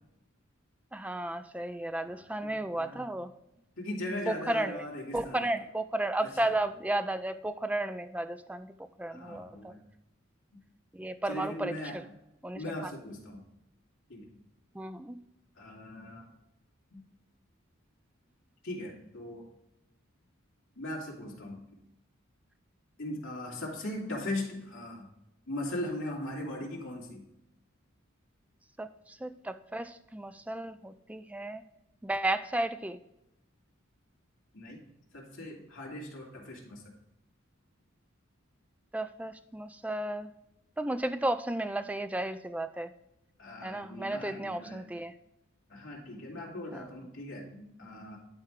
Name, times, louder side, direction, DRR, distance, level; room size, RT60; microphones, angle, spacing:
voice 1, 0.9-3.3 4.3-4.8 5.1-8.7 9.0-9.7 10.9-12.0 12.4-12.9 14.7-15.2 28.8-31.6 32.0-33.0 38.9-40.3 40.8-42.9 43.6-45.1 46.7-46.9, right 1 dB, 5° right, 10 dB, 0.3 m, -33 dB
voice 2, 2.0-3.1 3.8-5.5 6.2-6.5 9.1-9.8 11.2-12.0 12.5-13.4 14.1-14.3 15.6-16.3 16.9-17.0 18.6-19.5 20.8-21.8 23.0-25.1 25.5-27.2 34.5-34.8 35.1-36.8 43.4-44.8 45.7-48.2, left 1 dB, 65° left, -3 dB, 2.7 m, -39 dB
11.5 x 4.5 x 3.7 m, 0.88 s
head